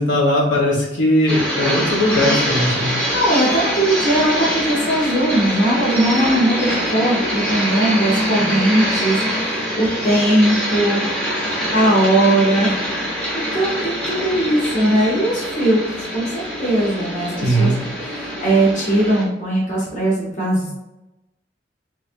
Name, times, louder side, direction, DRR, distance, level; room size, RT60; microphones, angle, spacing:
voice 1, 0.0-2.9 17.4-17.8, equal, 85° left, -3 dB, 1.1 m, -18 dB
sound 1, 1.3-19.2, equal, 5° left, 0.8 m, -24 dB
voice 2, 3.1-11.0 11.7-12.8 13.3-17.7 18.0-20.7, right 1 dB, 40° left, -5 dB, 1.1 m, -19 dB
3.3 x 3.2 x 2.6 m, 0.97 s
head